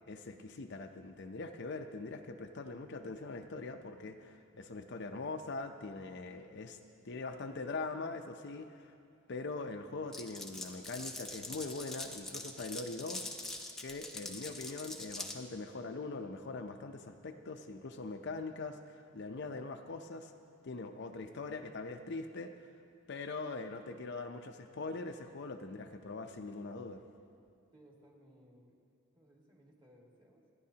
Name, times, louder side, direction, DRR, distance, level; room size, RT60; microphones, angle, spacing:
voice 1, 0.1-6.8 7.0-8.9 9.3-13.3 13.8-20.3 20.6-22.5 23.1-27.0, left 3 dB, 55° left, 6 dB, 0.6 m, -42 dB
Glass, 10.1-15.4, left 2 dB, ahead, 0.8 m, -43 dB
voice 2, 27.7-28.8 29.2-30.4, equal, 20° right, -2 dB, 1.9 m, -62 dB
28.0 x 10.5 x 2.8 m, 2.4 s
head